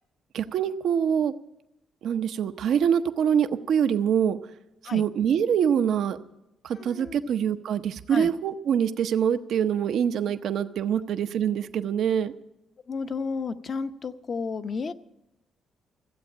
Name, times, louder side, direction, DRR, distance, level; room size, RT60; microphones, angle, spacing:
voice 1, 0.3-1.3 2.0-4.4 4.9-6.2 6.6-12.3, right 8 dB, 70° right, 9 dB, 0.7 m, -24 dB
voice 2, 6.7-7.3 8.1-8.3 12.9-14.9, left 4 dB, 45° left, 9 dB, 0.8 m, -32 dB
15.0 x 7.8 x 10.0 m, 0.88 s
cardioid pair, 90°, 0 cm